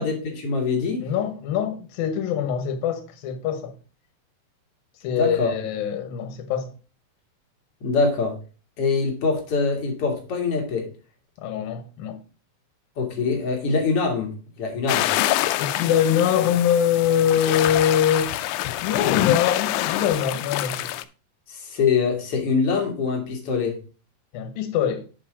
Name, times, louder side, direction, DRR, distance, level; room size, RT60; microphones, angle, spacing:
voice 1, 0.0-1.1 5.1-5.5 7.8-8.4 8.8-10.9 13.0-15.1 21.5-23.8, left 4 dB, 45° left, 2.3 m, -24 dB
voice 2, 1.0-3.7 5.0-6.7 11.4-12.2 15.6-20.9 24.3-25.1, left 9 dB, 75° left, 2.7 m, -23 dB
sound 1, 14.9-21.0, left 15 dB, 90° left, 2.5 m, -26 dB
7.6 x 5.5 x 4.9 m
omnidirectional pair, 4.5 m